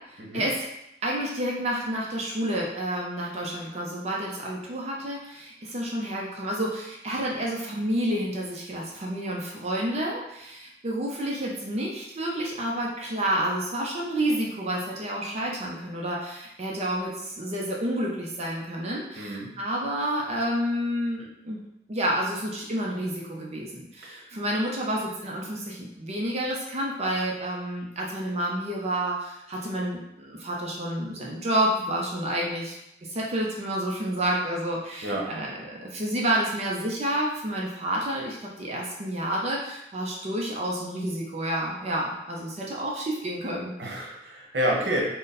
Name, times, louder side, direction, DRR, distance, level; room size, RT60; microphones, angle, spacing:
voice 1, 0.1-0.6 1.0-21.6 21.9-32.8 33.1-43.7, right 1 dB, 35° right, -2 dB, 0.6 m, -29 dB
voice 2, 19.1-19.5 24.0-24.3 35.0-35.3 43.8-45.0, equal, 70° right, -2 dB, 1.0 m, -29 dB
3.9 x 2.1 x 4.0 m, 0.84 s
head